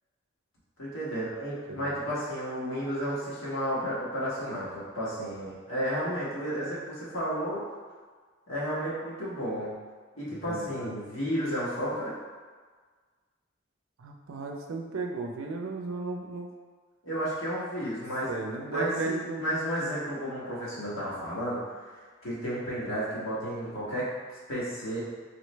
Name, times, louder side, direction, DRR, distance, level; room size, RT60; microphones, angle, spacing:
voice 1, 0.8-7.6 8.5-9.7 10.1-12.1 17.0-18.3 18.7-21.6 22.2-24.1 24.5-25.0, equal, 85° left, -8 dB, 1.5 m, -32 dB
voice 2, 10.3-10.9 14.0-16.5 18.3-19.5, right 3 dB, 90° right, 2 dB, 0.4 m, -35 dB
3.8 x 3.0 x 3.2 m, 1.5 s
head